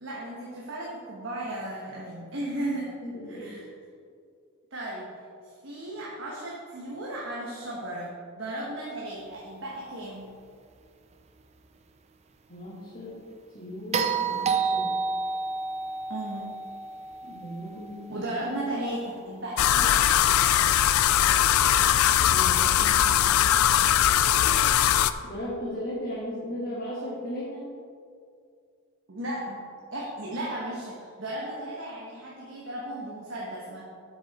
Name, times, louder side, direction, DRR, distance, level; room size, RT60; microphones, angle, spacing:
voice 1, 0.0-2.9 3.3-3.6 4.7-5.1 5.6-10.3 16.1-16.5 18.1-20.1 29.1-29.6 29.9-33.8, right 1 dB, 60° right, -4 dB, 1.2 m, -35 dB
voice 2, 2.7-3.5 12.5-13.3 13.5-14.9 17.2-18.3 21.7-23.6 25.2-27.7, equal, 40° left, -7 dB, 1.6 m, -37 dB
sound 1, 13.9-18.2 20.4-20.5, right 4 dB, 30° right, 0.5 m, -30 dB
sound 2, 19.6-25.1, left 10 dB, 75° left, 0.3 m, -21 dB
7.9 x 6.6 x 4.2 m, 2.3 s
head